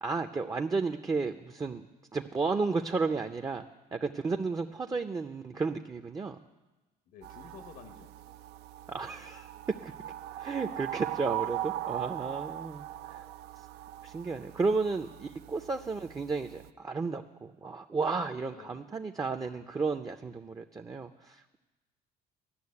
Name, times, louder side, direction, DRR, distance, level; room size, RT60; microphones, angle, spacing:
voice 1, 0.0-1.8 2.1-6.4 8.9-9.5 9.8-9.9 10.3-13.2 14.0-21.6, right 4 dB, 20° right, 5 dB, 0.5 m, -33 dB
voice 2, 4.7-5.0 7.1-8.3 12.2-12.9 18.5-19.0, left 6 dB, 85° left, 6 dB, 1.1 m, -54 dB
sound 1, 7.2-16.7, right 13 dB, 80° right, 0.4 m, -40 dB
13.0 x 6.5 x 9.6 m, 1.1 s
cardioid pair, 110°, 17 cm